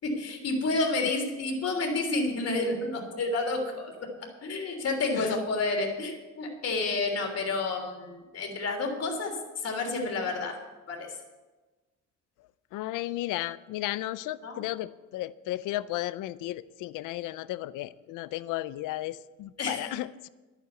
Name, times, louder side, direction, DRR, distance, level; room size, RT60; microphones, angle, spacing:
voice 1, 0.0-4.1 4.4-9.3 9.6-10.6 10.9-11.2 14.4-14.6 19.6-20.0, left 3 dB, 55° left, 2 dB, 3.3 m, -30 dB
voice 2, 12.7-20.3, left 15 dB, 90° left, 17 dB, 0.5 m, -34 dB
11.0 x 9.3 x 8.0 m, 1.2 s
cardioid pair, 90°, 30 cm